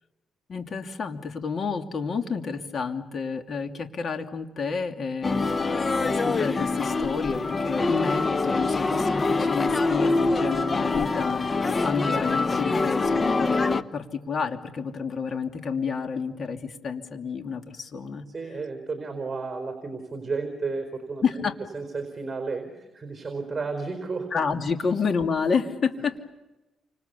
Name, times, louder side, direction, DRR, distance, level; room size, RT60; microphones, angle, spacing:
voice 1, 0.5-18.2 21.2-21.5 24.3-26.2, left 5 dB, 50° left, 5 dB, 2.8 m, -30 dB
sound 1, 5.2-13.8, left 3 dB, 30° left, 0.9 m, -25 dB
voice 2, 18.3-21.5 21.7-24.3, right 4 dB, 25° right, 6 dB, 4.6 m, -32 dB
29.0 x 26.5 x 7.1 m, 1.0 s
cardioid pair, 90°, 0 cm